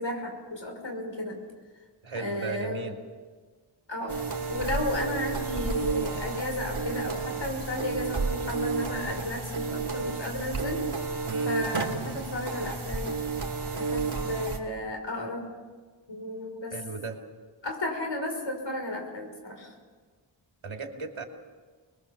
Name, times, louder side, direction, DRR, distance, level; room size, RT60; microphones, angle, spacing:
voice 1, 0.0-1.4 2.2-2.8 3.9-4.2 4.5-10.8 11.4-13.2 13.7-15.5 16.1-16.7 17.6-19.7, left 1 dB, 65° left, 3 dB, 5.8 m, -33 dB
voice 2, 2.0-3.0 11.2-11.5 16.7-17.2 20.6-21.2, right 4 dB, 75° right, 2 dB, 3.0 m, -36 dB
sound 1, 4.1-14.6, right 4 dB, 55° right, 3.2 m, -31 dB
29.0 x 22.0 x 7.3 m, 1.5 s
wide cardioid pair, 95°, 48 cm